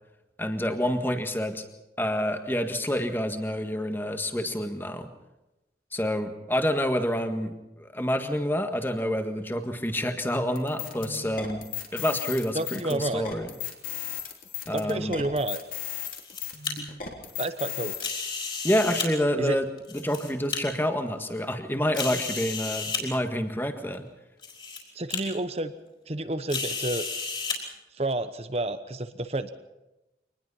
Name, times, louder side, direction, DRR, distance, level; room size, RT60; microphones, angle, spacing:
voice 1, 0.4-1.6 2.0-5.1 5.9-11.6 11.9-13.5 14.7-15.2 18.6-19.6 19.9-24.0, equal, 10° left, 6 dB, 1.7 m, -28 dB
sound 1, 10.6-18.1, left 8 dB, 50° left, 3.2 m, -36 dB
voice 2, 12.5-13.3 14.7-15.6 17.4-18.0 19.4-19.6 24.9-25.7 26.1-27.1 27.9-29.5, right 2 dB, 35° right, 10 dB, 1.0 m, -30 dB
sound 2, 16.0-16.7 18.0-19.1 19.8-20.6 21.2-21.3 21.9-23.0 23.9-24.0 24.4-24.8 25.1-25.2 26.5-27.6, left 5 dB, 30° left, 4.6 m, -32 dB
24.5 x 20.0 x 5.7 m, 0.99 s
head